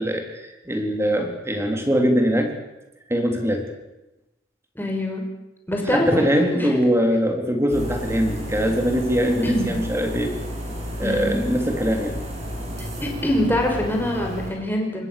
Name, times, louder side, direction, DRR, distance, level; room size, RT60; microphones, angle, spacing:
voice 1, 0.0-2.5 3.1-3.7 5.9-10.3 11.0-12.2, equal, 15° right, 4 dB, 3.7 m, -22 dB
voice 2, 4.8-5.2 5.7-6.9 9.4-9.7 11.0-11.4 12.8-15.1, left 1 dB, 10° left, 1 dB, 5.5 m, -24 dB
sound 1, 7.7-14.5, equal, 35° right, 7.5 m, -32 dB
25.5 x 20.5 x 6.9 m, 0.98 s
head